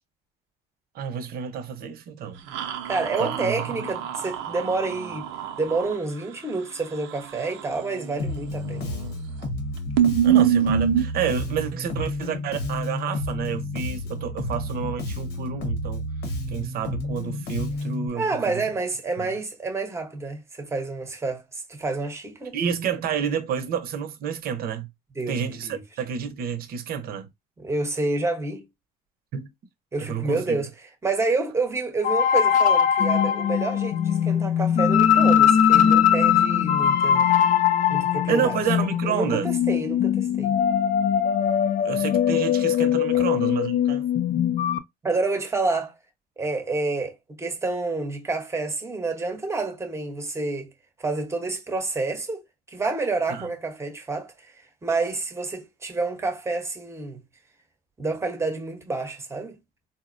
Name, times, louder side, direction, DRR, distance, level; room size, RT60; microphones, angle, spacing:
voice 1, 0.9-2.4 3.2-3.9 10.2-16.1 16.5-18.6 19.2-19.3 22.5-24.9 25.3-27.3 29.3-29.5 30.0-30.6 38.3-39.5 41.8-44.1 53.3-53.5, right 7 dB, 55° right, 0.7 m, -29 dB
sound 1, 2.5-5.9 8.6-9.1 9.4-9.5 10.0-11.0, right 9 dB, 90° right, 0.6 m, -24 dB
voice 2, 2.8-5.3 5.6-8.9 18.1-22.6 25.2-25.8 27.6-28.6 29.9-30.7 31.0-37.3 37.9-38.6 39.0-40.5 43.1-43.2 45.0-46.0 46.4-50.7 51.0-52.4 52.7-54.3 54.8-57.2 58.0-59.6, right 3 dB, 15° right, 0.9 m, -28 dB
Bass guitar, 8.2-18.1, left 1 dB, 65° left, 1.0 m, -31 dB
sound 2, 32.0-44.8, left 9 dB, 45° left, 0.4 m, -21 dB
3.9 x 2.1 x 2.5 m
cardioid pair, 115°, 18 cm